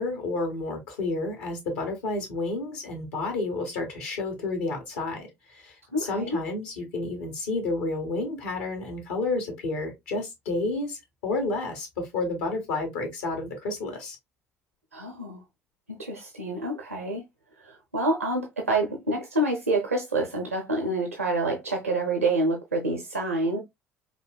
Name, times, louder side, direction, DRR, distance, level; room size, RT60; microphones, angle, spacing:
voice 1, 0.0-14.2, left 2 dB, 65° left, 1.4 m, -30 dB
voice 2, 5.9-6.4 14.9-15.4 15.9-17.2 17.6-23.6, right 2 dB, 85° right, 0.6 m, -27 dB
5.1 x 2.6 x 2.2 m
figure-of-eight pair, 55°, 7 cm